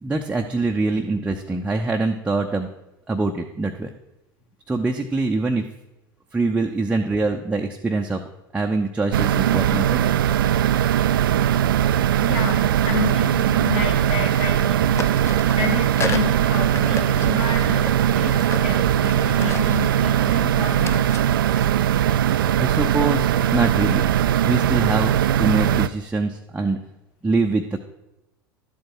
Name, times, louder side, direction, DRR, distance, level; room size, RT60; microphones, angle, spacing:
voice 1, 0.0-2.7 3.1-3.9 4.7-5.7 6.3-8.2 8.5-10.0 22.6-24.1 24.4-25.1 25.4-26.8 27.2-27.8, right 3 dB, 10° right, 2 dB, 0.7 m, -24 dB
sound 1, 9.1-25.9, right 10 dB, 70° right, 0.4 m, -20 dB
sound 2, 10.8-11.0 12.4-13.7 13.9-14.7 15.0-22.7, left 4 dB, 20° left, 0.8 m, -36 dB
voice 2, 12.2-15.1 15.6-18.4 18.6-21.0, left 4 dB, 45° left, 2 dB, 2.2 m, -30 dB
12.0 x 7.6 x 4.5 m, 0.93 s
figure-of-eight pair, 80°, 12 cm